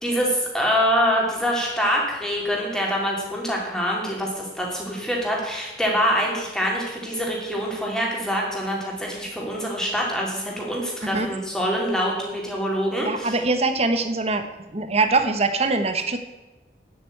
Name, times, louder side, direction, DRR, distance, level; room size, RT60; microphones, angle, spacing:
voice 1, 0.0-13.4, equal, 5° left, -2 dB, 3.0 m, -25 dB
voice 2, 13.0-14.4 14.7-16.2, right 3 dB, 35° right, 8 dB, 1.1 m, -22 dB
9.8 x 8.1 x 8.5 m, 1.1 s
head